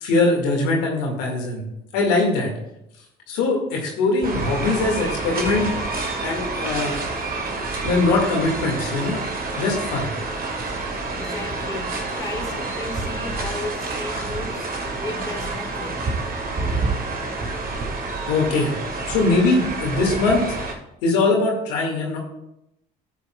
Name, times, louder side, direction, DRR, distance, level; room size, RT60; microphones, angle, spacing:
voice 1, 0.0-1.6 1.9-2.5 3.3-5.7 6.2-7.0 7.8-9.2 9.6-10.1 18.3-18.8 19.1-20.4 21.0-22.2, left 3 dB, 85° left, 1.9 m, -21 dB
sound 1, 4.2-20.7, right 3 dB, 45° right, 1.7 m, -28 dB
voice 2, 10.8-16.1, left 2 dB, 15° left, 1.9 m, -35 dB
12.0 x 8.3 x 2.3 m
hypercardioid pair, 60°, 21 cm